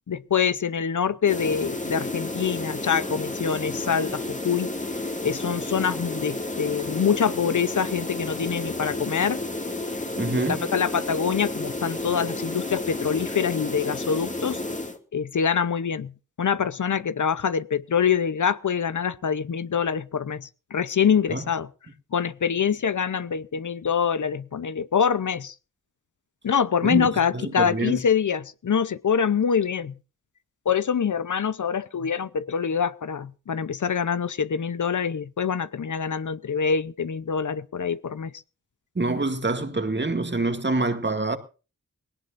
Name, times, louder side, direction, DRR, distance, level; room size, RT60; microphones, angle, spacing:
voice 1, 0.1-4.7 5.2-9.4 10.5-14.6 15.1-16.1 16.4-21.7 22.1-25.5 26.4-30.0 30.7-38.4, left 7 dB, 65° left, 0.8 m, -25 dB
sound 1, 1.2-15.0, left 2 dB, 20° left, 2.2 m, -31 dB
voice 2, 10.2-10.7 21.3-21.4 26.8-27.1 27.3-28.0 39.0-41.4, right 2 dB, 35° right, 2.2 m, -26 dB
20.0 x 17.5 x 2.6 m
cardioid pair, 60°, 33 cm